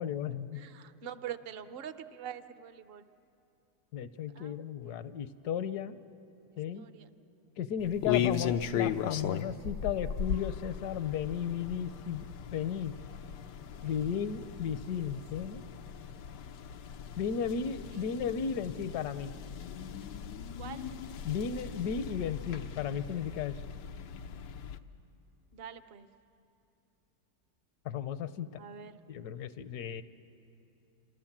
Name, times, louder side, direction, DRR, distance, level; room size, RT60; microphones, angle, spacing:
voice 1, 0.0-0.6 3.9-6.0 6.6-6.9 7.6-12.2 12.5-12.9 13.8-15.6 17.2-19.3 21.2-23.5 27.8-28.6 29.1-30.0, left 8 dB, 70° left, 13 dB, 1.3 m, -34 dB
voice 2, 0.5-3.1 4.3-5.1 6.8-7.1 13.8-14.1 15.4-15.5 20.6-20.9 25.5-26.1 28.6-29.0, right 9 dB, 50° right, 11 dB, 0.8 m, -45 dB
sound 1, 7.8-24.8, left 8 dB, 90° left, 1.4 m, -38 dB
28.0 x 28.0 x 7.4 m, 2.9 s
omnidirectional pair, 1.8 m